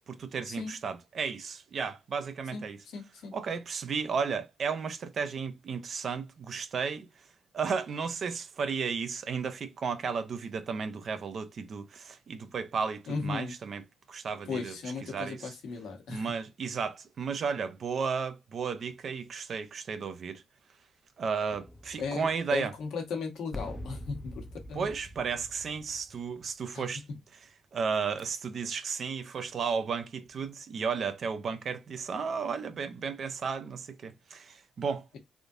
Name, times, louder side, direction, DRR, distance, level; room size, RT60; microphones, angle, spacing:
voice 1, 0.0-2.8 3.3-7.1 7.5-13.8 14.1-14.7 15.1-15.5 16.1-20.4 21.2-22.7 24.7-27.0 27.7-35.1, right 5 dB, 60° right, 0.5 m, -33 dB
voice 2, 2.5-3.3 13.1-13.5 14.5-16.3 22.0-24.9 26.7-26.9, left 4 dB, 75° left, 1.1 m, -37 dB
sound 1, 21.5-22.8 23.5-26.8 27.9-28.3, left 1 dB, 20° left, 0.6 m, -45 dB
3.5 x 2.5 x 2.4 m
supercardioid pair, 50°, 0 cm